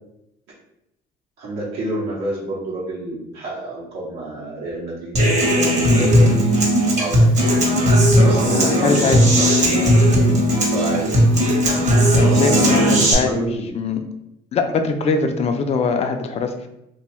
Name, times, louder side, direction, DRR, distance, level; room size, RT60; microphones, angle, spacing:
voice 1, 1.4-7.6 8.2-9.9 10.5-11.3 12.5-13.9, right 2 dB, 75° right, -6 dB, 0.8 m, -29 dB
Human voice / Acoustic guitar, 5.1-13.1, equal, 40° right, 0.8 m, -16 dB
voice 2, 8.2-9.2 12.1-13.5 13.7-14.0 14.5-16.7, left 4 dB, 40° left, 6 dB, 0.3 m, -22 dB
2.6 x 2.3 x 3.0 m, 0.84 s
cardioid pair, 110°, 17 cm